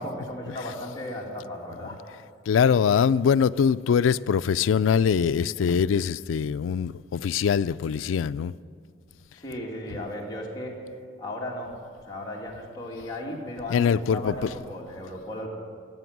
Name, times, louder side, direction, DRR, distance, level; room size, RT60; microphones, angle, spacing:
voice 1, 0.0-2.0 9.4-10.8 11.2-11.7 12.1-15.5, left 1 dB, 20° left, 2.4 m, -35 dB
voice 2, 2.5-8.5 13.7-14.3, left 7 dB, 85° left, 0.3 m, -23 dB
15.0 x 7.8 x 9.4 m
head